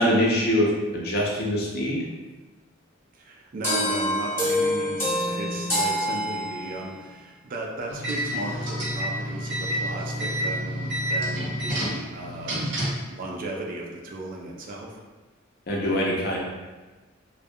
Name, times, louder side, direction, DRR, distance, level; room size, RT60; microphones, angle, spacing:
voice 1, 0.0-2.0 15.7-16.4, equal, 50° left, -3 dB, 0.5 m, -23 dB
voice 2, 3.1-12.7 13.1-15.0, right 2 dB, 45° right, -1 dB, 0.3 m, -35 dB
sound 1, 3.6-6.9, equal, 15° left, 0.8 m, -26 dB
sound 2, 7.9-13.1, equal, 65° right, 0.7 m, -29 dB
2.3 x 2.1 x 2.6 m, 1.2 s
head